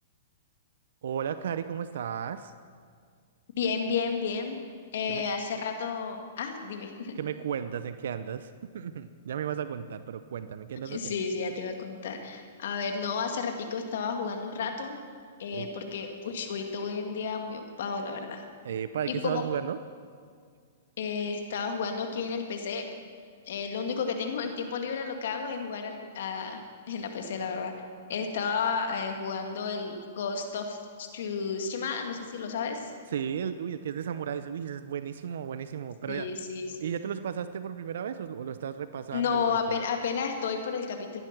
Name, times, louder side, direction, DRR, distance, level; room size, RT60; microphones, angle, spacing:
voice 1, 1.0-2.5 5.1-5.2 7.2-11.2 15.5-15.7 18.6-19.8 33.1-36.3 36.7-39.8, right 8 dB, 75° right, 12 dB, 0.6 m, -34 dB
voice 2, 3.6-4.6 4.9-7.2 10.9-15.0 15.4-18.4 19.1-19.5 21.0-22.8 23.5-26.6 26.9-27.7 28.1-32.9 36.1-36.9 39.1-41.2, left 5 dB, 70° left, 4 dB, 2.0 m, -32 dB
15.0 x 11.0 x 6.0 m, 2.1 s
hypercardioid pair, 130°, 0 cm